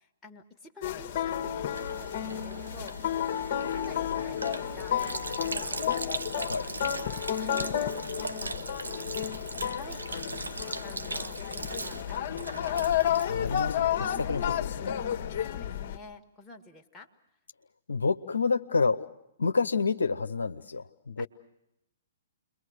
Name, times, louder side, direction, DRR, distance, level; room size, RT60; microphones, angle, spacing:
voice 1, 0.0-3.1 3.7-5.7 7.3-10.1 10.6-12.8 15.4-17.1 21.2-21.3, left 2 dB, 10° left, 0 dB, 2.0 m, -49 dB
sound 1, 0.8-16.0, left 10 dB, 45° left, 1.6 m, -31 dB
Sink (filling or washing), 1.7-14.1, right 3 dB, 85° right, 1.0 m, -39 dB
voice 2, 13.3-15.4 17.9-19.1 19.4-21.3, left 4 dB, 75° left, 9 dB, 0.9 m, -29 dB
29.0 x 22.5 x 6.5 m, 0.85 s
figure-of-eight pair, 120°, 0 cm